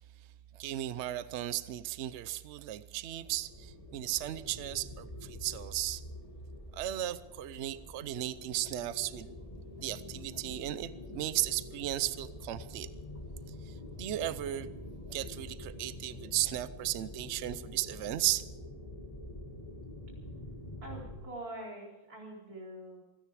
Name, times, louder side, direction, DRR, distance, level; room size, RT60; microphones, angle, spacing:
voice 1, 0.5-6.0 6.7-9.4 9.8-12.9 13.7-14.7 15.1-18.4, right 14 dB, 90° right, 15 dB, 0.6 m, -35 dB
sound 1, 3.2-21.2, left 1 dB, 20° left, 2.2 m, -46 dB
voice 2, 20.8-23.0, right 1 dB, 50° right, -2 dB, 4.7 m, -44 dB
27.5 x 10.0 x 4.9 m, 1.0 s
omnidirectional pair, 2.0 m